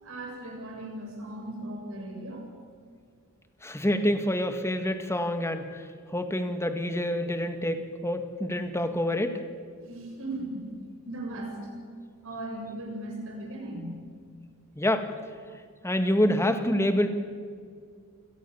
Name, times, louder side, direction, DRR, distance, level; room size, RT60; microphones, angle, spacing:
voice 1, 0.0-2.5 9.9-10.7 11.0-11.7 12.2-14.1, right 1 dB, 65° right, 1 dB, 7.3 m, -37 dB
voice 2, 3.6-5.7 6.1-9.4 14.8-15.1 15.8-17.1, left 1 dB, 10° left, 7 dB, 1.9 m, -27 dB
28.0 x 17.0 x 7.1 m, 2.1 s
head